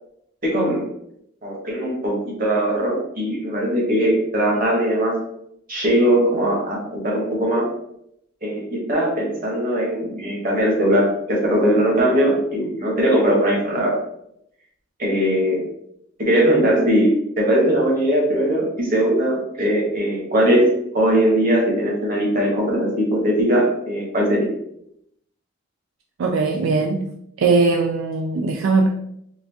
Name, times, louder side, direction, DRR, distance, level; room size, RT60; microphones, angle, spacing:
voice 1, 0.4-0.9 1.4-5.2 5.7-7.7 8.4-14.0 15.0-15.6 16.2-24.5, right 1 dB, 45° right, -2 dB, 1.2 m, -20 dB
voice 2, 26.2-27.1 27.4-28.9, right 3 dB, 70° right, 2 dB, 0.3 m, -19 dB
3.8 x 2.4 x 3.4 m, 0.75 s
head